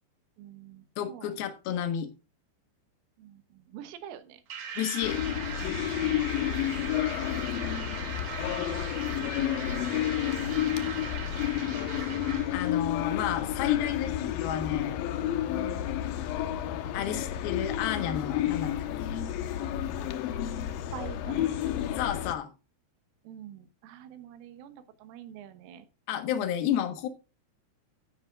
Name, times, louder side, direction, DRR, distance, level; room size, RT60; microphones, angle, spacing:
voice 1, 0.4-1.3 3.2-4.4 7.2-7.9 15.5-15.9 20.9-21.8 23.3-25.9, right 10 dB, 85° right, 10 dB, 3.8 m, -46 dB
voice 2, 1.0-2.1 4.8-5.2 12.5-15.0 16.9-18.7 19.0-19.2 22.0-22.5 26.1-27.1, left 10 dB, 65° left, 9 dB, 2.9 m, -31 dB
sound 1, 4.5-12.8, right 6 dB, 65° right, 1.8 m, -40 dB
sound 2, 5.0-22.3, left 11 dB, 85° left, 2.0 m, -30 dB
13.0 x 10.0 x 2.4 m, 0.29 s
omnidirectional pair, 5.6 m